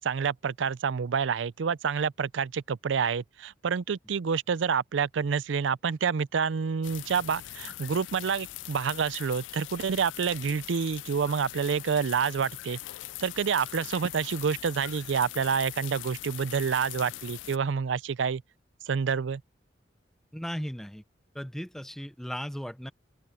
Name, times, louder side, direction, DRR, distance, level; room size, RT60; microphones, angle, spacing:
voice 1, 0.0-12.8 13.2-18.4 18.9-19.4, right 6 dB, 90° right, 0.5 m, -28 dB
sound 1, 6.8-17.6, left 16 dB, 85° left, 0.3 m, -42 dB
voice 2, 20.3-21.0 21.3-22.9, equal, ahead, 0.6 m, -36 dB
open air
head